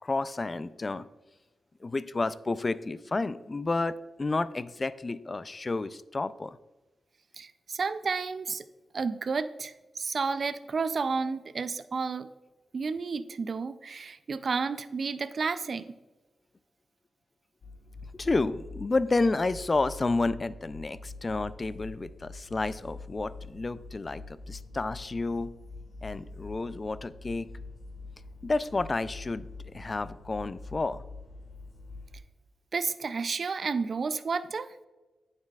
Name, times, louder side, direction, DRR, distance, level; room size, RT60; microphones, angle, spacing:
voice 1, 0.0-1.1 1.8-6.6 18.1-25.5 26.0-27.5 28.4-31.0, left 3 dB, 35° left, 15 dB, 0.3 m, -30 dB
voice 2, 7.4-8.7 8.9-12.3 12.7-15.9 32.7-34.7, right 4 dB, 55° right, 12 dB, 0.4 m, -31 dB
sound 1, 17.6-32.2, left 3 dB, 65° left, 1.2 m, -45 dB
9.4 x 6.6 x 2.4 m, 1.1 s
cardioid pair, 60°, 0 cm